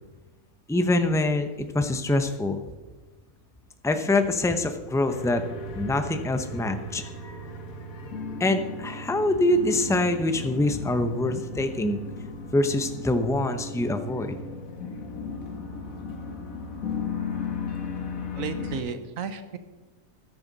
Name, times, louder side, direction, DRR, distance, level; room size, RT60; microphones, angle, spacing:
voice 1, 0.7-1.5 1.7-2.6 3.8-5.4 5.7-7.4 8.4-12.0 12.5-14.3, left 2 dB, 5° left, 8 dB, 0.4 m, -25 dB
sound 1, 5.1-18.8, left 4 dB, 65° left, 1.7 m, -36 dB
voice 2, 18.3-19.6, right 6 dB, 65° right, 10 dB, 1.3 m, -33 dB
13.5 x 11.0 x 4.1 m, 1.2 s
omnidirectional pair, 1.6 m